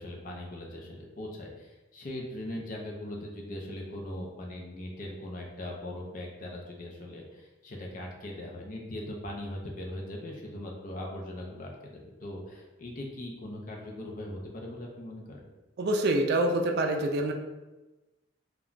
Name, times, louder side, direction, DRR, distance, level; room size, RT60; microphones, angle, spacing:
voice 1, 0.0-15.4, left 1 dB, 45° left, -1 dB, 0.5 m, -40 dB
voice 2, 15.8-17.3, right 1 dB, 55° right, 3 dB, 0.3 m, -26 dB
2.3 x 2.1 x 3.7 m, 1.1 s
head